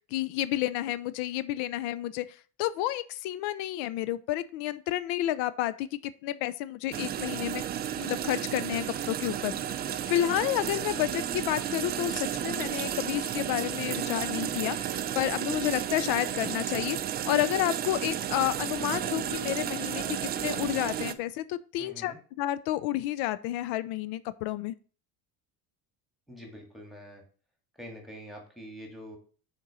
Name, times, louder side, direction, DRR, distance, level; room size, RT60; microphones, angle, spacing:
voice 1, 0.1-2.3 2.6-7.6 8.0-9.5 10.1-14.8 15.1-17.0 17.3-24.7, left 14 dB, 85° left, 15 dB, 0.7 m, -30 dB
sound 1, 6.9-21.1, right 10 dB, 25° right, 0.3 m, -33 dB
voice 2, 21.8-22.2 26.3-27.2 27.8-29.2, equal, ahead, 2 dB, 1.8 m, -45 dB
6.5 x 4.5 x 6.2 m, 0.40 s
cardioid pair, 170°, 38 cm